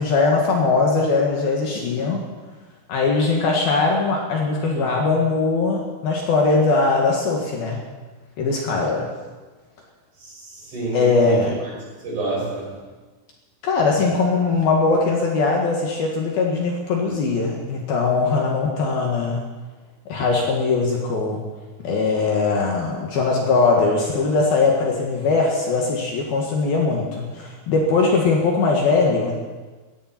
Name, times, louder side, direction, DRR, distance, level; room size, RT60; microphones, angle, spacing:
voice 1, 0.0-2.2 2.9-7.8 8.4-9.1 10.9-11.5 13.6-19.4 20.1-21.4 21.8-29.3, left 3 dB, 60° left, -1 dB, 3.3 m, -20 dB
voice 2, 10.2-12.8, right 2 dB, 45° right, -4 dB, 7.1 m, -30 dB
19.0 x 15.5 x 4.4 m, 1.3 s
omnidirectional pair, 5.2 m